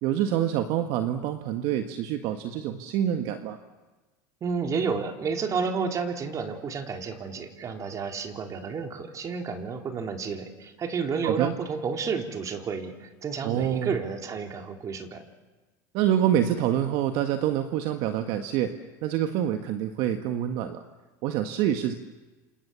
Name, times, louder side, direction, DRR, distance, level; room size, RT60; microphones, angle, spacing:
voice 1, 0.0-3.6 11.2-11.5 13.4-13.9 15.9-18.7 19.0-20.8 21.2-21.9, right 10 dB, 60° right, 7 dB, 1.7 m, -26 dB
voice 2, 4.4-15.2, right 5 dB, 35° right, 4 dB, 3.8 m, -31 dB
28.5 x 27.5 x 7.1 m, 1.2 s
supercardioid pair, 105°, 10 cm